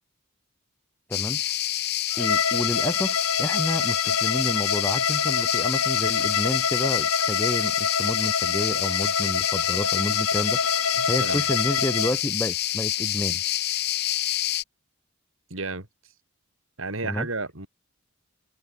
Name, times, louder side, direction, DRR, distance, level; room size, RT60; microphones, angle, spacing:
sound 1, 1.1-14.6, left 14 dB, 45° left, 1.1 m, -27 dB
voice 1, 1.1-1.4 2.2-10.6 11.1-13.4 17.0-17.3, equal, 10° left, 1.0 m, -30 dB
Bowed string instrument, 2.1-12.2, left 5 dB, 75° left, 2.9 m, -27 dB
voice 2, 11.0-11.4 15.5-15.9 16.8-17.7, right 3 dB, 60° right, 3.6 m, -32 dB
head